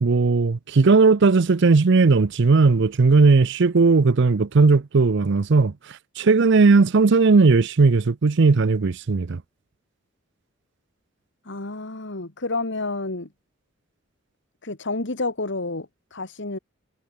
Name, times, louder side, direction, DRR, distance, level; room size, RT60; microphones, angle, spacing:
voice 1, 0.0-5.7 6.2-9.4, right 4 dB, 65° right, 0.6 m, -17 dB
voice 2, 11.5-13.3 14.6-16.6, left 2 dB, 65° left, 2.2 m, -29 dB
head